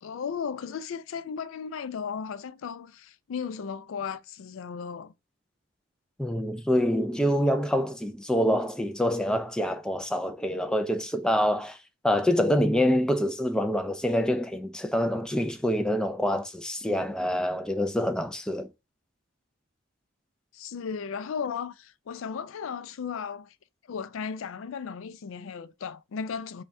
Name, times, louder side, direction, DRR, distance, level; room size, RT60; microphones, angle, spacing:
voice 1, 0.0-5.1 20.5-23.5 23.9-26.6, left 6 dB, 80° left, 0.4 m, -35 dB
voice 2, 6.2-11.8 12.0-18.7, equal, 5° left, 0.4 m, -26 dB
5.3 x 2.3 x 2.6 m
head